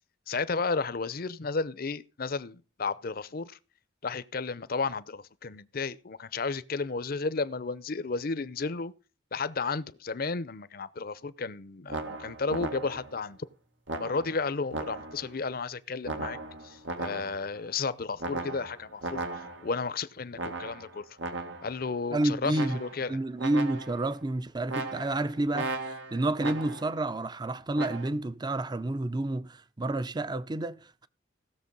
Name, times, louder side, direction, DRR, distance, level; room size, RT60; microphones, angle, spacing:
voice 1, 0.3-3.6 4.0-8.9 9.3-13.4 13.9-16.4 16.6-21.0 21.6-23.2, left 4 dB, 50° left, 0.7 m, -33 dB
sound 1, 11.9-13.2 13.9-15.3 16.0-17.6 18.2-19.8 20.4-21.8 22.5-23.1 23.4-24.1 24.7-27.0 27.7-28.1, right 2 dB, 85° right, 2.0 m, -37 dB
voice 2, 22.1-22.8 23.1-31.1, right 2 dB, 25° right, 0.6 m, -30 dB
16.0 x 6.9 x 5.4 m
head